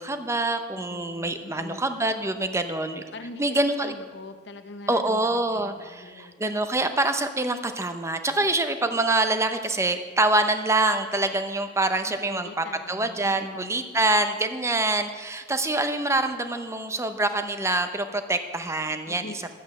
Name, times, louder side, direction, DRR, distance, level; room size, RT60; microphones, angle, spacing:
voice 1, 0.0-3.0 3.4-4.0 4.9-19.3, right 2 dB, 15° right, 8 dB, 0.8 m, -25 dB
voice 2, 0.7-2.0 3.1-6.4 12.0-13.8 19.1-19.5, left 2 dB, 65° left, 8 dB, 1.0 m, -43 dB
11.5 x 8.6 x 6.6 m, 1.5 s
head